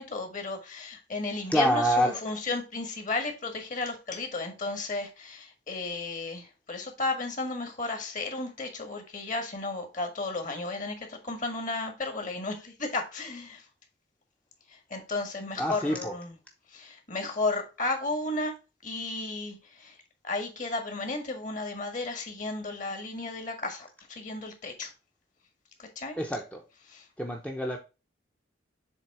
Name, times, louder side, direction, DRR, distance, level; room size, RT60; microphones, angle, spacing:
voice 1, 0.0-13.6 14.9-16.3 16.7-18.5 18.8-19.9 20.2-24.9 25.8-26.2 26.9-27.0, left 3 dB, 45° left, 1.7 m, -33 dB
voice 2, 1.5-2.2 15.6-16.1 26.2-26.6 27.2-27.8, equal, 5° left, 0.7 m, -26 dB
7.3 x 3.5 x 4.7 m
head